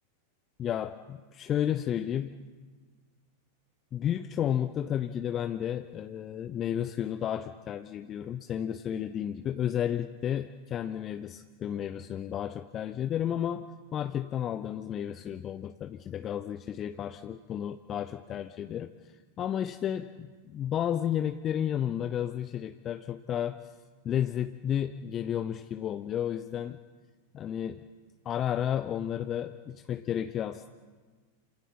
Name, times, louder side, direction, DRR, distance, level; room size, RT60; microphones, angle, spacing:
voice 1, 0.6-2.3 3.9-18.9 19.4-23.6 24.0-26.8 27.3-27.9 28.2-30.7, left 10 dB, 30° left, 10 dB, 0.7 m, -32 dB
28.5 x 25.5 x 4.4 m, 1.4 s
figure-of-eight pair, 90°, 0 cm